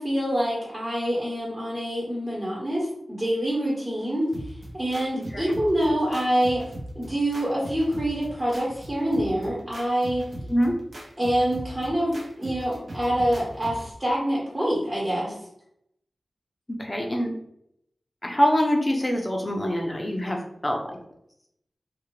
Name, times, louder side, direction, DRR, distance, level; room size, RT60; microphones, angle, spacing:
voice 1, 0.0-4.3 4.7-6.6 6.9-10.2 11.2-15.3, right 1 dB, 25° right, -6 dB, 1.1 m, -26 dB
sound 1, 4.3-13.9, right 1 dB, 55° right, 0.7 m, -39 dB
voice 2, 5.1-5.5 10.5-10.7 16.7-17.3 18.2-21.0, equal, 25° left, 1 dB, 0.5 m, -25 dB
2.5 x 2.4 x 3.1 m, 0.75 s
wide cardioid pair, 60°, 0 cm